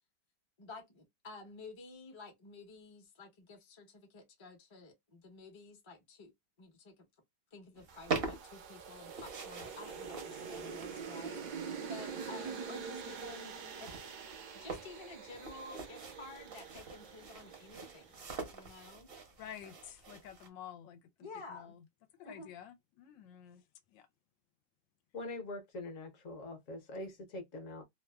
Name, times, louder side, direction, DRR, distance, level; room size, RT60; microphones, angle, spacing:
voice 1, 0.6-6.3 6.6-7.1 7.5-13.9 14.5-19.1 21.2-21.8 22.2-22.5, left 3 dB, 25° left, 0.6 m, -52 dB
sound 1, 7.7-20.5, right 4 dB, 45° right, 0.7 m, -45 dB
sound 2, 7.9-18.2, right 6 dB, 70° right, 1.1 m, -45 dB
voice 2, 18.3-18.9 19.4-21.9 22.2-24.1, left 9 dB, 80° left, 1.3 m, -51 dB
voice 3, 25.1-27.8, left 2 dB, 50° left, 1.1 m, -43 dB
3.1 x 2.2 x 2.2 m
omnidirectional pair, 2.0 m